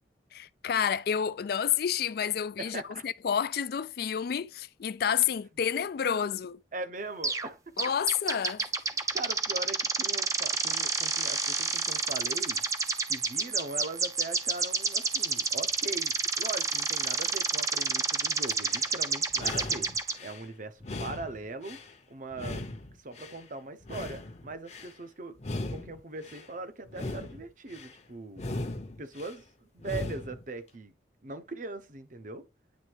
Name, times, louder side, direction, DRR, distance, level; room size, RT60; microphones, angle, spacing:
voice 1, 0.3-6.6 7.8-8.6, left 8 dB, 55° left, 0.4 m, -29 dB
voice 2, 2.6-3.0 6.7-7.6 9.1-12.7 13.1-19.9 20.2-21.8 22.1-22.6 23.0-25.4 25.7-28.4 29.0-30.9 31.2-32.5, right 2 dB, 45° right, 0.8 m, -40 dB
sound 1, 7.2-7.5 7.8-20.1, right 4 dB, 20° right, 0.5 m, -29 dB
sound 2, 18.5-18.9 19.3-20.4 20.8-21.9 22.3-23.4 23.8-24.9 25.4-26.5 26.9-27.9 28.3-29.4 29.8-30.4, left 2 dB, 40° left, 0.8 m, -38 dB
9.4 x 3.3 x 3.2 m
head